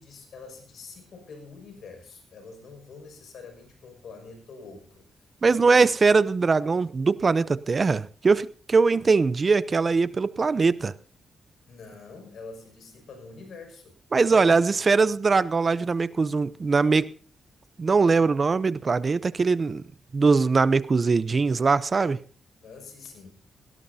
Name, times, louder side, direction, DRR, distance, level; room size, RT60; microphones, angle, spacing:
voice 1, 0.0-5.0 5.4-5.9 11.7-14.8 22.5-23.4, left 4 dB, 70° left, 6.1 m, -45 dB
voice 2, 5.4-10.9 14.1-17.1 17.8-19.8 20.1-22.2, right 4 dB, 40° right, 0.6 m, -21 dB
18.0 x 17.5 x 2.8 m
cardioid pair, 75°, 0 cm